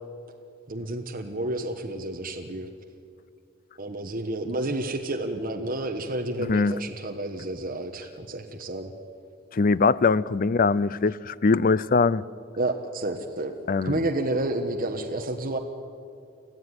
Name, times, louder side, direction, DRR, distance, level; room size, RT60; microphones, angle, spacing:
voice 1, 0.7-2.7 3.8-8.9 12.5-13.5 13.8-15.6, right 1 dB, 45° right, 3 dB, 1.3 m, -30 dB
voice 2, 6.4-6.7 9.5-12.2 13.7-14.0, left 4 dB, 45° left, 19 dB, 0.5 m, -22 dB
25.5 x 15.0 x 9.7 m, 2.4 s
head